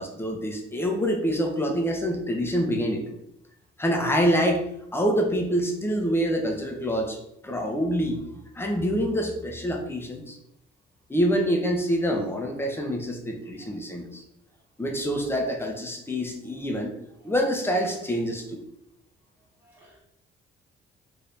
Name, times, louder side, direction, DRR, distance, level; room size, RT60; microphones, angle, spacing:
voice 1, 0.0-3.0 3.8-4.7 4.9-7.2 7.4-8.2 8.5-10.4 11.1-14.2 14.8-16.9 17.2-18.6, equal, 10° left, 0.6 m, -26 dB
voice 2, 19.6-20.0, equal, 10° right, 1.1 m, -58 dB
2.6 x 2.6 x 3.4 m
cardioid pair, 90°, 20 cm